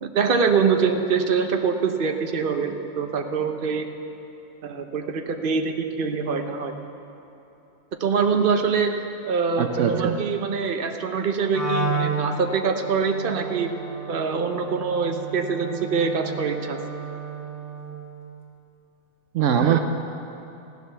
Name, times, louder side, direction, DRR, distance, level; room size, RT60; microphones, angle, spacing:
voice 1, 0.0-3.9 4.6-6.7 8.0-9.0 9.2-13.7 14.1-16.8 19.6-19.8, right 5 dB, 45° right, 5 dB, 1.0 m, -24 dB
voice 2, 9.6-10.1 19.3-19.8, right 8 dB, 75° right, 7 dB, 1.0 m, -21 dB
Wind instrument woodwind instrument, 11.5-17.9, right 3 dB, 70° left, 2.8 m, -32 dB
15.0 x 10.5 x 6.8 m, 3.0 s
omnidirectional pair, 1.3 m